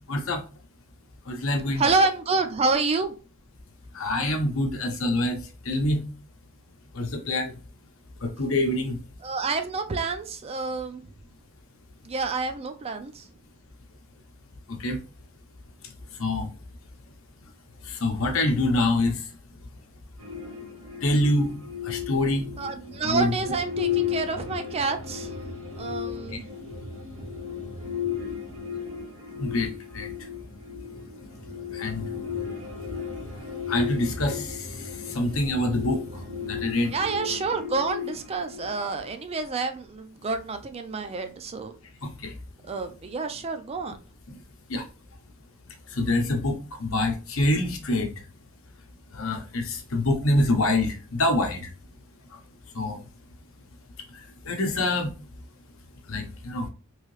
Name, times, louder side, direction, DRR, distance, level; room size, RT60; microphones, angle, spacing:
voice 1, 0.1-0.4 1.3-1.8 3.9-6.1 6.9-7.6 8.2-9.0 14.7-15.0 16.2-16.5 17.8-19.2 21.0-21.6 21.8-22.5 23.0-23.3 26.3-26.4 29.4-30.1 31.7-32.1 33.7-36.0 36.4-36.9 42.0-42.3 44.3-44.4 44.7-44.9 45.9-48.1 49.1-51.7 52.7-53.0 54.1-55.1 56.1-56.7, left 1 dB, 70° left, 0.8 m, -26 dB
voice 2, 1.8-3.1 9.2-11.1 12.0-13.2 22.6-25.3 25.8-26.4 36.9-41.7 42.7-44.0, right 3 dB, 30° right, 0.4 m, -28 dB
sound 1, 20.2-39.1, left 7 dB, 85° right, 1.0 m, -35 dB
3.1 x 2.7 x 3.1 m
head